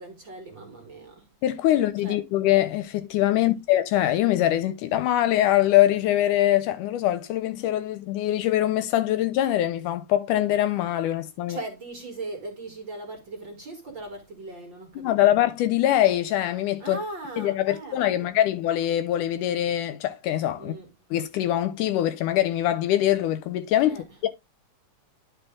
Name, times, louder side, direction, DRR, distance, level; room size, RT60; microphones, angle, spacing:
voice 1, 0.0-1.3 1.7-2.2 3.3-3.5 11.4-15.4 16.8-18.4 20.5-20.9 23.8-24.0, right 2 dB, 45° right, 1.6 m, -39 dB
voice 2, 1.4-11.6 15.0-17.0 17.4-20.7 21.1-24.3, left 13 dB, 80° left, 2.0 m, -23 dB
10.5 x 4.5 x 3.6 m
omnidirectional pair, 3.9 m